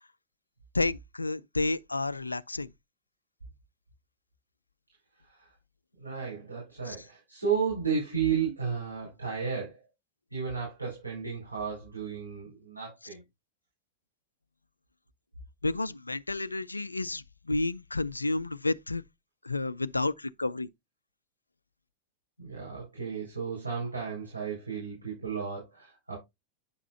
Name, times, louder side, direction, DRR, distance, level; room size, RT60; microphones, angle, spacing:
voice 1, 0.7-2.7 6.9-7.0 15.6-19.0 19.4-20.7, left 2 dB, 80° left, 0.4 m, -31 dB
voice 2, 6.0-9.9 10.3-13.2 22.4-26.2, right 6 dB, 85° right, 4.8 m, -33 dB
9.6 x 6.0 x 2.6 m
figure-of-eight pair, 90°, 0 cm